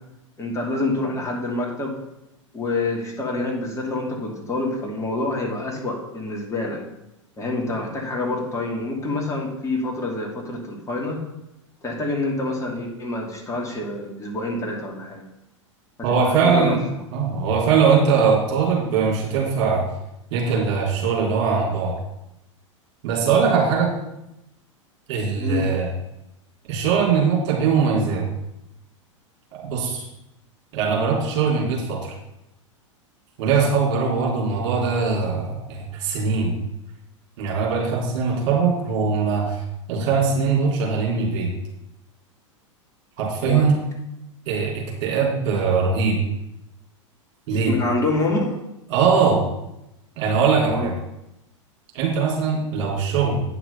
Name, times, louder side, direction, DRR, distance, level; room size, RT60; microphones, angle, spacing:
voice 1, 0.4-2.0 2.5-6.8 7.4-11.2 11.8-15.2 16.1-16.8 25.4-25.7 43.4-43.6 47.5-48.6 50.6-50.9, left 2 dB, 20° left, -1 dB, 2.6 m, -27 dB
voice 2, 16.0-19.8 20.3-21.9 23.0-23.9 25.1-25.9 26.7-28.2 29.5-30.1 30.7-32.1 33.4-36.5 37.4-39.6 39.9-41.5 43.2-43.8 44.5-46.2 47.5-47.7 48.9-49.4 50.2-50.9 51.9-53.4, right 5 dB, 50° right, -2 dB, 3.8 m, -21 dB
9.3 x 6.0 x 5.7 m, 0.88 s
figure-of-eight pair, 95°, 16 cm